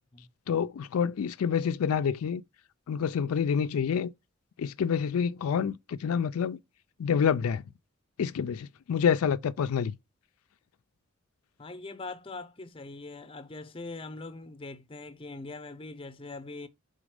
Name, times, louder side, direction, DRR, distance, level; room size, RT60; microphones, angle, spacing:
voice 1, 0.5-2.4 2.9-4.1 4.6-6.6 7.0-7.6 8.2-9.9, left 7 dB, 90° left, 0.4 m, -27 dB
voice 2, 11.6-16.7, left 3 dB, 25° left, 0.6 m, -42 dB
5.0 x 3.9 x 4.8 m
head